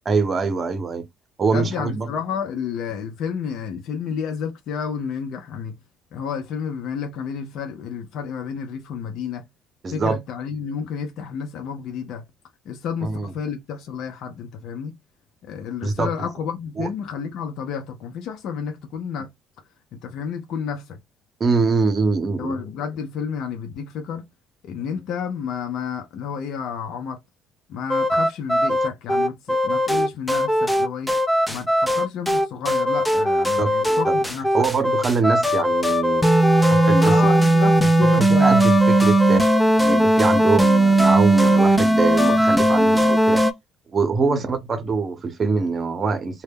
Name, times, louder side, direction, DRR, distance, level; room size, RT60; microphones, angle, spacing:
voice 1, 0.1-1.0 1.4-2.1 9.8-10.2 13.0-13.3 15.8-16.1 16.8-16.9 21.4-22.6 33.6-34.2 34.5-36.3 36.6-37.2 37.8-39.5 39.8-43.4 43.9-46.4, right 4 dB, 40° right, 0.7 m, -23 dB
voice 2, 1.5-5.8 6.1-9.4 9.9-12.2 12.7-15.0 15.4-19.3 19.9-21.0 22.4-24.2 24.6-27.2 27.7-31.1 31.5-34.5 37.0-38.6 44.2-44.4, left 7 dB, 70° left, 0.5 m, -30 dB
sound 1, 27.9-43.5, right 1 dB, 5° left, 0.4 m, -18 dB
2.2 x 2.1 x 3.3 m
supercardioid pair, 85°, 0 cm